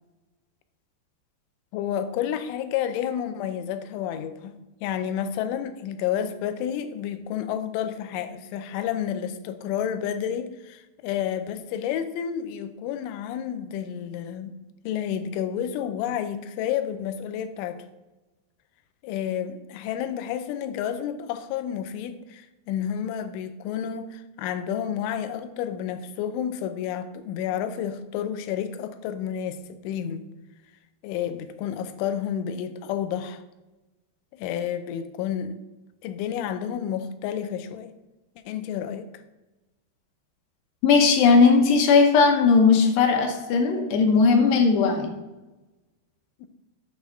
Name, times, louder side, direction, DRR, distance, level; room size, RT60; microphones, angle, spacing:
voice 1, 1.7-4.6 4.8-14.6 14.8-17.9 19.0-30.3 31.0-33.4 34.3-35.6 36.0-37.9 38.5-39.1 46.4-46.5, left 9 dB, 90° left, 10 dB, 3.1 m, -30 dB
voice 2, 40.8-45.1, left 5 dB, 75° left, 4 dB, 2.8 m, -18 dB
8.7 x 3.5 x 6.4 m, 1.1 s
omnidirectional pair, 5.3 m